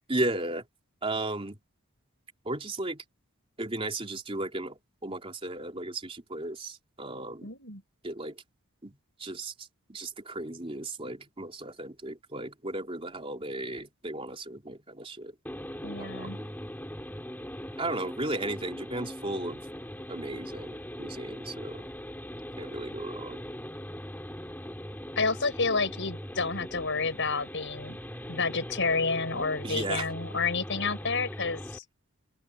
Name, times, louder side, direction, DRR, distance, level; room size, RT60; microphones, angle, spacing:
voice 1, 0.1-0.7 1.0-1.6 2.5-3.0 3.6-7.5 8.0-8.4 8.8-15.3 16.0-16.5 17.8-19.6 20.1-21.8 22.6-23.4 29.6-30.1, right 2 dB, 25° right, 3.5 m, -35 dB
voice 2, 7.4-7.8 15.8-16.4 25.2-28.0 28.3-31.8, left 4 dB, 55° left, 7.5 m, -30 dB
sound 1, 15.5-31.8, equal, 10° left, 6.2 m, -40 dB
open air
head